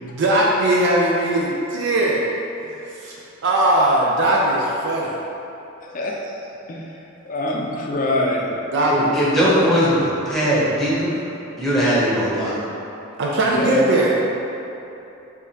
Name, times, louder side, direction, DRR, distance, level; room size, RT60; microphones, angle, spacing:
voice 1, 0.0-2.3 2.7-3.2 3.4-5.2 8.7-9.6 13.2-14.1, right 1 dB, 55° right, -3 dB, 0.4 m, -20 dB
voice 2, 5.8-6.2 6.7-6.9 7.2-8.6 13.4-13.8, left 1 dB, 40° left, -1 dB, 0.5 m, -24 dB
voice 3, 8.9-11.2 11.6-12.5, equal, ahead, -9 dB, 0.9 m, -19 dB
4.9 x 3.3 x 2.8 m, 3.0 s
head